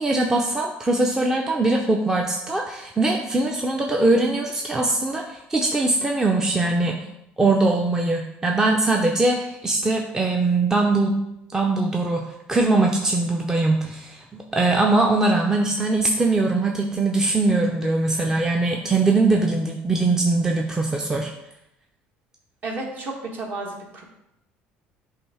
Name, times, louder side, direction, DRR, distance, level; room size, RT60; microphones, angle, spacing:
voice 1, 0.0-7.0 7.4-11.2 11.5-21.3, right 2 dB, 15° right, 1 dB, 0.6 m, -21 dB
voice 2, 22.6-24.0, right 2 dB, 45° right, 0 dB, 1.5 m, -32 dB
7.4 x 2.7 x 4.8 m, 0.82 s
cardioid pair, 110°, 4 cm